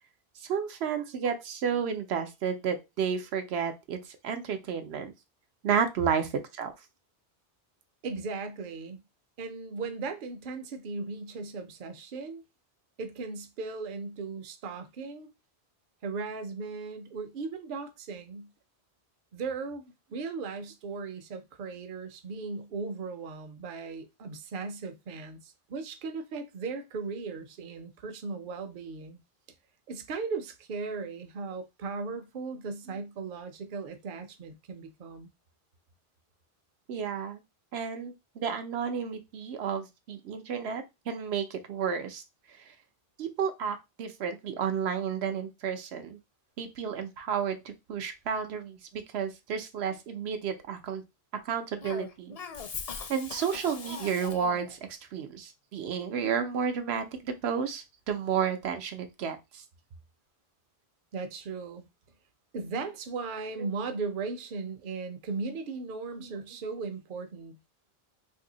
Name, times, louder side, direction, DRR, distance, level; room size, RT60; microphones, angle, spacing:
voice 1, 0.4-5.1 5.6-6.7 36.9-37.4 37.7-42.2 43.2-46.2 46.6-51.0 51.4-52.4 53.1-59.6 63.6-63.7 66.2-66.4, right 7 dB, 90° right, 0.9 m, -32 dB
voice 2, 8.0-9.0 9.4-12.4 13.0-15.3 16.0-18.5 19.3-29.2 29.9-35.3 61.1-61.9 62.5-67.6, right 4 dB, 60° right, 0.7 m, -37 dB
Cough, 51.8-54.7, left 5 dB, 50° left, 0.5 m, -40 dB
2.7 x 2.6 x 3.8 m
omnidirectional pair, 1.1 m